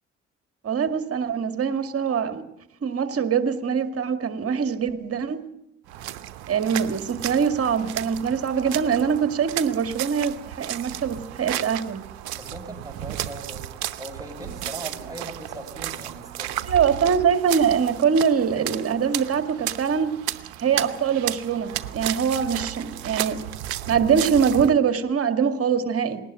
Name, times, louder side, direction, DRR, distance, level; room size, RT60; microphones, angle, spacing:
voice 1, 0.6-2.4 2.8-5.5 6.5-12.0 16.7-20.1 20.6-23.4 23.9-26.2, right 7 dB, 45° right, 8 dB, 2.1 m, -23 dB
sound 1, 5.9-24.7, right 13 dB, 75° right, 0.9 m, -34 dB
voice 2, 12.3-13.7 14.0-16.5, right 1 dB, 10° right, 3 dB, 6.0 m, -39 dB
20.0 x 18.5 x 7.8 m, 0.81 s
figure-of-eight pair, 45°, 32 cm